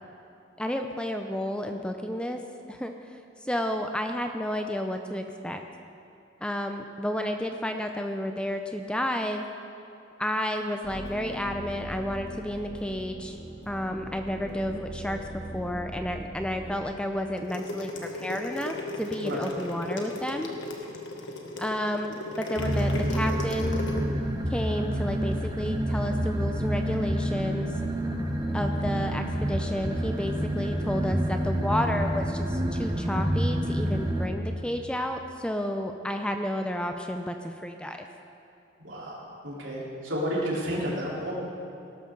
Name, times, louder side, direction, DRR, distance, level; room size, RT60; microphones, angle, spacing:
voice 1, 0.6-2.4 2.7-5.6 6.4-9.5 10.2-13.4 13.7-15.3 15.5-17.9 18.2-20.5 21.6-23.8 24.5-27.7 28.5-38.1, left 1 dB, 5° left, 5 dB, 0.5 m, -31 dB
sound 1, 10.8-16.8, right 1 dB, 50° left, 2.8 m, -40 dB
sound 2, 17.4-24.0, left 2 dB, 70° left, 1.5 m, -36 dB
sound 3, 22.6-34.3, equal, 20° right, 0.9 m, -28 dB
voice 2, 38.8-41.3, equal, 75° right, -5 dB, 3.8 m, -32 dB
18.0 x 12.5 x 3.8 m, 2.7 s
head